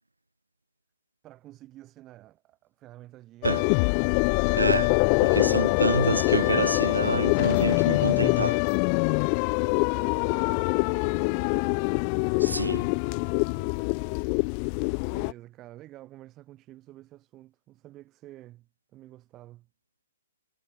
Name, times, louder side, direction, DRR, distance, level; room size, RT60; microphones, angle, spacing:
voice 1, 1.2-3.7 5.3-5.8 9.6-11.4 12.1-12.2 13.5-13.8 15.1-19.7, right 15 dB, 25° right, 4.3 m, -50 dB
sound 1, 3.4-15.3, left 40 dB or more, 35° left, 0.9 m, -24 dB
voice 2, 4.5-5.0 5.2-8.6 12.4-12.9, right 2 dB, 85° right, 1.5 m, -27 dB
figure-of-eight pair, 120°, 0 cm